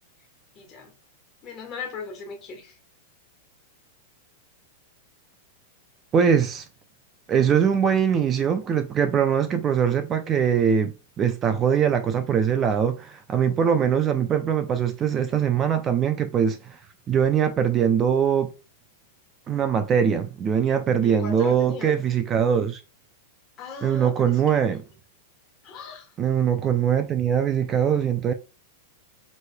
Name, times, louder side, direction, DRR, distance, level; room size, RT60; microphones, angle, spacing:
voice 1, 0.5-0.9 1.4-2.7 21.0-22.0 23.6-24.6 25.6-26.1, left 4 dB, 30° left, 1.5 m, -38 dB
voice 2, 6.1-6.7 7.3-16.8 17.1-18.5 19.5-22.8 23.8-24.8 26.2-28.3, right 8 dB, 25° right, 0.4 m, -22 dB
6.1 x 3.2 x 2.2 m
supercardioid pair, 145°, 0 cm